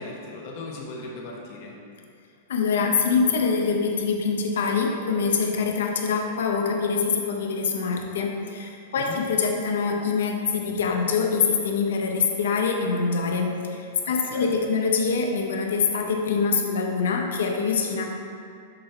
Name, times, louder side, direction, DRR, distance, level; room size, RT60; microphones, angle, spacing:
voice 1, 0.0-1.8 9.0-9.2 14.0-14.5, left 3 dB, 40° left, -2 dB, 1.1 m, -38 dB
voice 2, 2.5-18.0, left 5 dB, 85° left, 2 dB, 0.8 m, -24 dB
6.7 x 3.9 x 4.3 m, 2.5 s
supercardioid pair, 155°, 0 cm